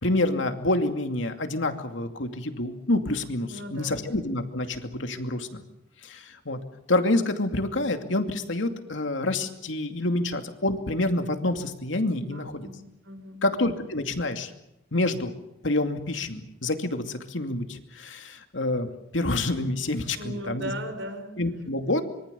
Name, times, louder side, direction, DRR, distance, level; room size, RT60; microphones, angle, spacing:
voice 1, 0.0-5.6 6.0-6.6 6.9-12.7 13.4-14.5 14.9-15.3 15.6-20.7 21.4-22.0, left 2 dB, 80° left, 6 dB, 2.5 m, -27 dB
voice 2, 3.5-4.1 12.3-13.4 20.2-21.4, equal, 75° right, 7 dB, 5.1 m, -38 dB
25.5 x 23.5 x 7.0 m, 0.87 s
head